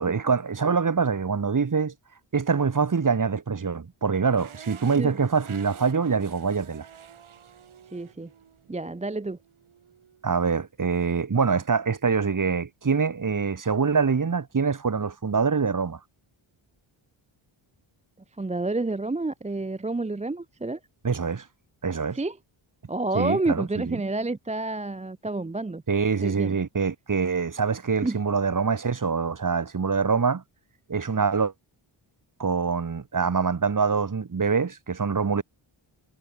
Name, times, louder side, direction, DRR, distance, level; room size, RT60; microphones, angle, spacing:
voice 1, 0.0-1.9 2.3-6.9 10.2-16.0 21.0-21.5 21.8-22.2 23.1-24.0 25.9-30.4 30.9-31.5 32.4-35.4, right 5 dB, 40° right, 2.8 m, -25 dB
sound 1, 4.4-10.4, right 8 dB, 75° right, 6.9 m, -49 dB
voice 2, 7.9-8.3 8.7-9.4 18.4-20.8 22.1-22.4 22.9-25.8 26.2-26.6 28.0-28.2, right 2 dB, 15° right, 0.8 m, -29 dB
cardioid pair, 95°, 50 cm